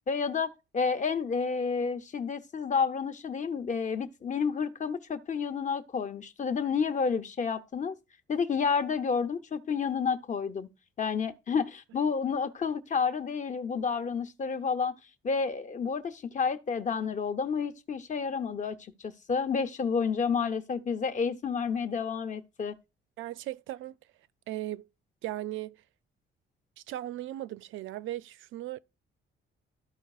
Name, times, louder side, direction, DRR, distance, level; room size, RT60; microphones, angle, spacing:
voice 1, 0.1-8.0 8.3-10.7 11.0-14.9 15.2-22.8, left 5 dB, 40° left, 0.7 m, -30 dB
voice 2, 23.2-24.0 24.5-24.9 25.2-25.8 26.9-28.8, right 14 dB, 80° right, 0.4 m, -37 dB
13.5 x 4.6 x 2.4 m
cardioid pair, 90°, 20 cm